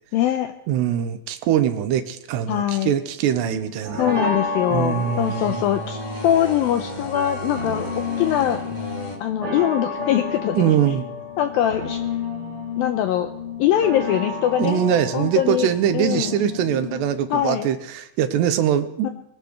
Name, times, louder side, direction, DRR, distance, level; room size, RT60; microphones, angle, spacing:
voice 1, 0.1-0.5 2.5-2.9 4.0-7.9 8.2-8.6 9.2-10.7 11.4-12.0 12.8-13.3 13.6-14.8 15.1-15.7 15.9-16.4 17.3-17.7 19.0-19.1, left 11 dB, 85° left, 7 dB, 2.1 m, -22 dB
voice 2, 0.7-4.0 4.7-5.6 10.5-11.0 14.6-19.1, right 10 dB, 85° right, 10 dB, 3.0 m, -22 dB
sound 1, 3.3-17.4, left 3 dB, 30° right, 4.2 m, -31 dB
sound 2, 4.0-9.2, equal, 30° left, 0.8 m, -34 dB
21.5 x 18.5 x 3.2 m, 0.79 s
omnidirectional pair, 4.9 m